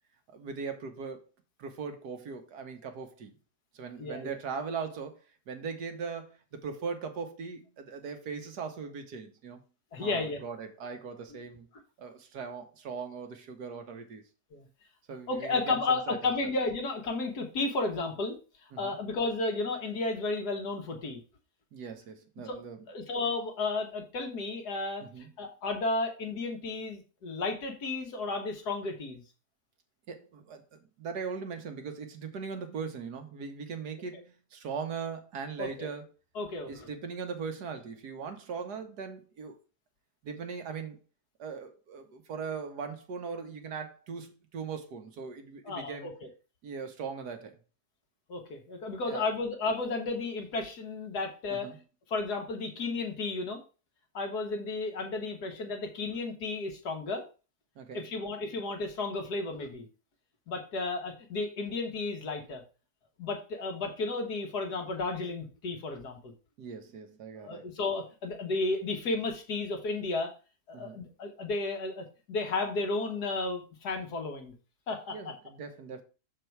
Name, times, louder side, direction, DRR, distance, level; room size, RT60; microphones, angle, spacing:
voice 1, 0.3-1.3 1.6-3.3 3.7-5.2 5.5-9.6 10.0-11.7 12.0-14.2 15.1-16.3 18.7-18.9 21.7-22.8 25.0-25.3 30.1-30.6 31.0-36.1 36.6-39.6 40.2-41.0 41.4-46.1 46.6-47.5 49.1-49.3 51.5-51.8 57.8-58.0 66.6-67.7 70.7-71.0 75.1-76.0, right 5 dB, 75° right, 1.6 m, -39 dB
voice 2, 4.0-4.4 9.9-10.4 14.5-14.7 15.3-18.4 18.8-21.2 22.5-22.6 22.9-29.2 35.6-35.9 36.4-36.9 45.7-46.3 48.3-51.7 52.1-53.6 54.1-57.2 57.9-59.9 60.5-62.6 63.2-66.3 67.3-70.3 70.7-74.5 74.9-75.2, left 3 dB, 70° left, 1.9 m, -33 dB
6.7 x 4.5 x 4.5 m
omnidirectional pair, 1.8 m